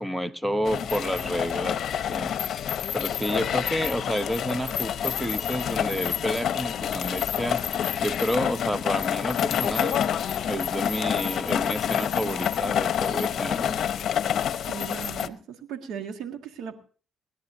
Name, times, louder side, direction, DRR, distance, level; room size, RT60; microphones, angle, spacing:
voice 1, 0.0-1.8 2.1-2.3 2.9-7.6 8.0-10.0 10.5-13.8, equal, 5° right, 0.9 m, -30 dB
sound 1, 0.6-15.3, left 9 dB, 65° left, 0.8 m, -28 dB
voice 2, 14.7-16.7, right 7 dB, 80° right, 1.8 m, -37 dB
26.5 x 11.0 x 2.7 m
cardioid pair, 90°, 0 cm